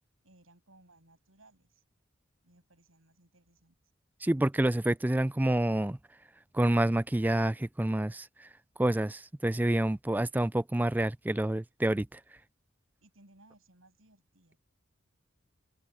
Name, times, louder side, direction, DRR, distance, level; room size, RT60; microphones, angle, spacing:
voice 1, 0.2-1.8 2.4-3.8 4.6-4.9 13.0-14.6, right 2 dB, 75° right, 7.9 m, -62 dB
voice 2, 4.2-6.0 6.5-8.5 8.8-12.2, right 1 dB, 10° right, 0.3 m, -28 dB
head